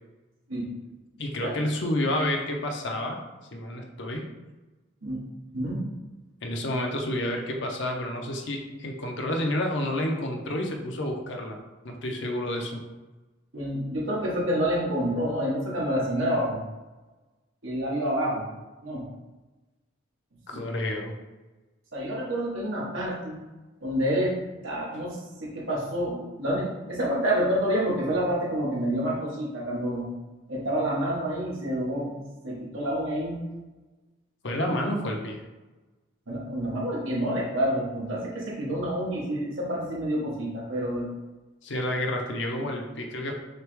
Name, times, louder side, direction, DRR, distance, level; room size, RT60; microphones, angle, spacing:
voice 1, 1.2-3.2 3.5-4.3 6.4-11.6 11.8-12.8 20.5-21.1 24.9-25.0 34.4-35.4 41.6-43.3, left 1 dB, 65° left, 2 dB, 0.7 m, -29 dB
voice 2, 5.5-5.8 13.5-16.7 17.6-18.5 18.8-19.0 20.5-20.6 21.9-23.4 23.8-24.4 24.6-30.1 30.5-33.4 36.3-41.1, equal, 80° right, -5 dB, 1.4 m, -28 dB
6.4 x 2.3 x 3.2 m, 1.2 s
head